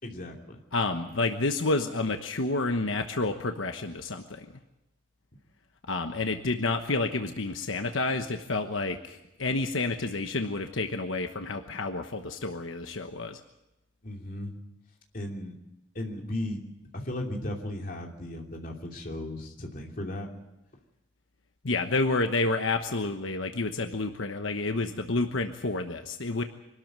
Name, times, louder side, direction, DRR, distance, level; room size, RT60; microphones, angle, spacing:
voice 1, 0.0-0.6 14.0-14.5 15.1-15.6 15.9-16.6 16.9-20.3, left 1 dB, 45° left, 1 dB, 2.9 m, -36 dB
voice 2, 0.7-4.5 5.9-13.4 21.6-26.4, left 3 dB, 85° left, 6 dB, 1.2 m, -29 dB
24.5 x 13.0 x 9.1 m, 0.93 s
head